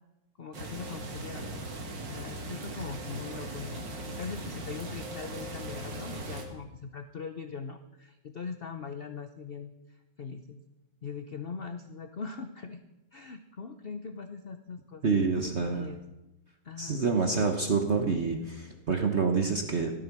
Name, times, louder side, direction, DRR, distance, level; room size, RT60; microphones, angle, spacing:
voice 1, 0.4-1.5 2.0-10.6 11.0-12.8 13.1-15.2 15.7-16.0 16.6-17.0, left 5 dB, 45° left, 8 dB, 0.8 m, -41 dB
sound 1, 0.5-6.4, right 1 dB, 75° right, 2.8 m, -39 dB
voice 2, 15.0-15.9 16.8-19.9, right 4 dB, 40° right, 4 dB, 1.3 m, -27 dB
16.0 x 13.0 x 6.1 m, 0.98 s
omnidirectional pair, 2.0 m